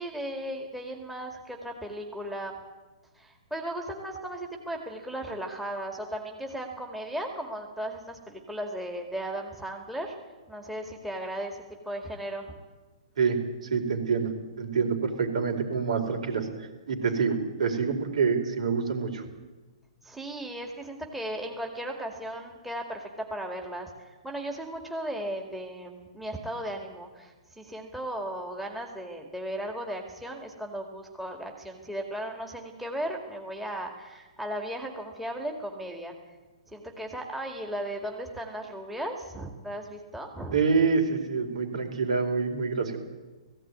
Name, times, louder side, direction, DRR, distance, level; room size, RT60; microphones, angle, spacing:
voice 1, 0.0-2.6 3.2-10.2 10.5-12.5 20.0-36.1 36.7-40.6, right 1 dB, 5° right, 1 dB, 2.1 m, -36 dB
voice 2, 13.6-14.3 14.6-19.2 40.5-43.0, right 5 dB, 75° right, 3 dB, 4.6 m, -26 dB
17.5 x 16.0 x 9.5 m, 1.2 s
hypercardioid pair, 155°, 4 cm